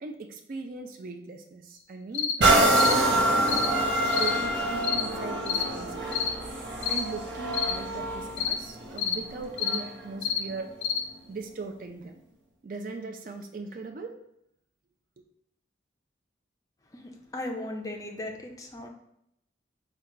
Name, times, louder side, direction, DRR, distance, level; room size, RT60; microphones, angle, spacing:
voice 1, 0.0-3.7 4.2-6.2 6.8-10.7 11.3-12.2 12.6-14.1, right 3 dB, 45° right, 4 dB, 0.4 m, -39 dB
sound 1, 2.1-2.4 2.8-3.0 3.5-3.7 4.1-4.3 4.8-5.1 5.5-5.7 6.1-6.3 6.8-7.0 7.5-7.8 8.4-8.6 9.0-9.2 9.6-9.8 10.2-10.4 10.8-11.0, left 7 dB, 80° left, 0.4 m, -28 dB
sound 2, 2.4-10.0 10.6-10.7, right 1 dB, 75° right, 0.8 m, -26 dB
voice 2, 16.9-18.9, left 1 dB, 20° left, 2 dB, 0.4 m, -37 dB
3.7 x 2.2 x 4.3 m, 0.75 s
head